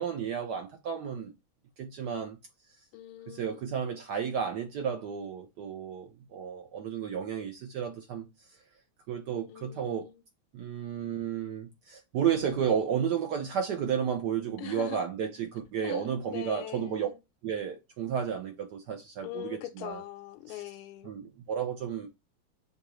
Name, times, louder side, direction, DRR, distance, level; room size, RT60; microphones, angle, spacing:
voice 1, 0.0-1.3 1.8-2.4 3.3-8.3 9.1-10.1 10.5-17.1 17.4-20.0 20.5-20.6 21.0-22.1, right 8 dB, 70° right, 1.0 m, -32 dB
voice 2, 2.9-3.7 9.5-10.2 14.6-15.0 15.8-17.2 19.2-21.1, left 12 dB, 85° left, 1.5 m, -42 dB
6.6 x 2.4 x 3.0 m
omnidirectional pair, 2.4 m